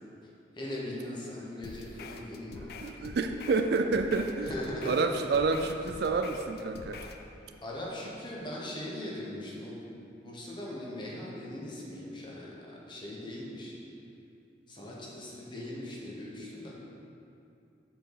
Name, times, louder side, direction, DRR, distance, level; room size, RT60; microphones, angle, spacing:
voice 1, 0.5-2.7 4.4-5.0 7.6-9.8 10.2-13.8 14.7-16.7, left 1 dB, 25° left, -4 dB, 1.2 m, -40 dB
sound 1, 1.6-7.2, left 3 dB, 55° left, 0.4 m, -45 dB
voice 2, 2.8-4.5 4.9-7.0, right 4 dB, 60° right, 6 dB, 0.3 m, -29 dB
7.5 x 4.8 x 4.9 m, 2.6 s
head